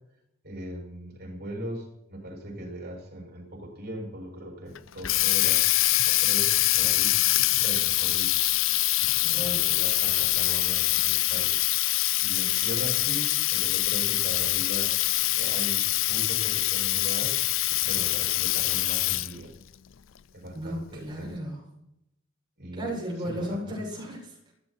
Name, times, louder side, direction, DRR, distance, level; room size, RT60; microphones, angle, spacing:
voice 1, 0.4-7.2 7.6-8.4 9.3-11.6 11.8-17.4 17.9-19.5 20.3-21.4 22.6-22.9 23.2-23.8, right 1 dB, 50° right, 1 dB, 7.2 m, -39 dB
Water tap faucet, 4.7-19.4, left 18 dB, 70° left, 0.5 m, -24 dB
voice 2, 9.2-9.8 20.5-21.6 22.8-24.5, equal, 25° right, -3 dB, 7.7 m, -35 dB
20.0 x 16.0 x 4.6 m, 0.82 s
head